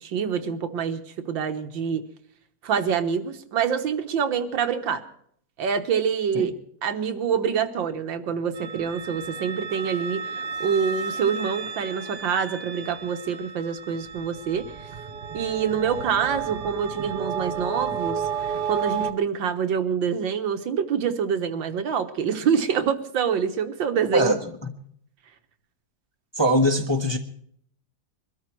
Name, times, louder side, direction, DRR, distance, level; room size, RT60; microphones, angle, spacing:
voice 1, 0.0-2.0 2.6-5.0 5.6-6.5 6.8-14.9 15.3-24.3, right 7 dB, 90° right, 1.9 m, -26 dB
sound 1, 8.6-19.1, right 6 dB, 65° right, 1.6 m, -32 dB
voice 2, 24.1-24.7 26.3-27.2, equal, 20° left, 1.0 m, -22 dB
22.5 x 13.0 x 4.6 m
omnidirectional pair, 2.0 m